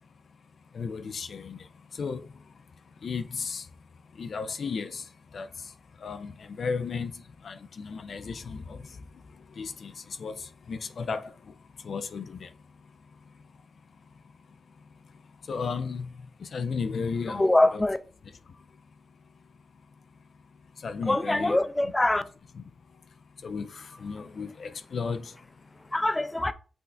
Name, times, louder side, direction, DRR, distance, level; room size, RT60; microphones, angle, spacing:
voice 1, 0.0-17.8 18.5-21.6 22.6-25.9, left 5 dB, 70° left, 0.3 m, -37 dB
voice 2, 17.3-18.0 21.0-22.2 25.8-26.5, left 1 dB, 20° left, 0.5 m, -24 dB
5.9 x 2.5 x 3.3 m
supercardioid pair, 40°, 0 cm